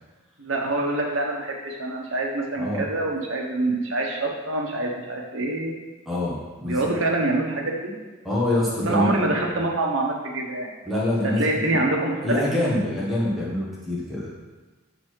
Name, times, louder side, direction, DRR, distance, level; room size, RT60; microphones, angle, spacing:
voice 1, 0.4-5.7 6.6-7.9 8.9-10.7 11.4-12.4, right 2 dB, 75° right, 0 dB, 1.1 m, -25 dB
voice 2, 6.1-6.9 8.2-9.2 10.8-11.4 11.7-11.8 12.2-14.3, left 1 dB, ahead, -7 dB, 1.4 m, -25 dB
6.5 x 4.1 x 4.7 m, 1.3 s
head